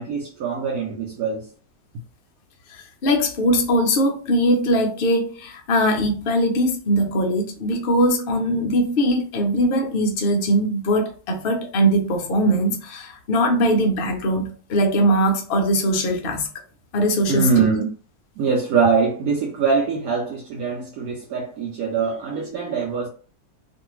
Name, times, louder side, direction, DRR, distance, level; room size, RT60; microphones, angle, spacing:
voice 1, 0.0-1.5 17.3-17.9 18.4-23.1, right 5 dB, 70° right, 0.9 m, -23 dB
voice 2, 2.7-16.5 16.9-17.6, equal, 75° left, 0.5 m, -21 dB
2.6 x 2.5 x 3.0 m
omnidirectional pair, 1.9 m